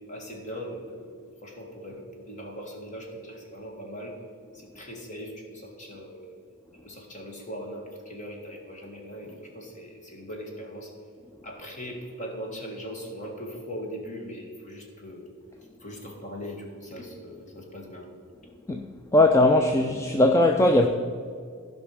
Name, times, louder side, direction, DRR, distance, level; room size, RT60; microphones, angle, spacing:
voice 1, 0.1-4.1 4.7-6.3 6.8-10.9 11.4-15.3 15.8-18.1, equal, 35° left, 1.8 m, -40 dB
voice 2, 19.1-20.9, left 1 dB, 15° left, 0.4 m, -19 dB
15.0 x 5.5 x 4.9 m
head